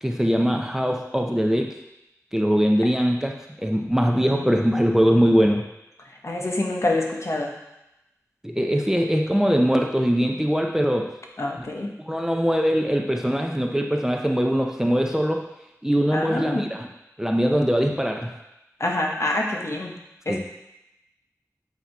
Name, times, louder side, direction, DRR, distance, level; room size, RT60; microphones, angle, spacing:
voice 1, 0.0-1.7 2.3-5.6 8.4-11.1 11.6-11.7 12.1-15.4 15.8-16.9 17.2-18.3 20.3-20.4, equal, 10° right, 1 dB, 0.6 m, -22 dB
voice 2, 6.2-7.5 11.4-11.9 16.1-16.7 18.8-19.9 20.3-20.4, left 2 dB, 55° left, 0 dB, 1.0 m, -26 dB
8.2 x 2.9 x 4.6 m, 0.90 s
wide cardioid pair, 55°, 6 cm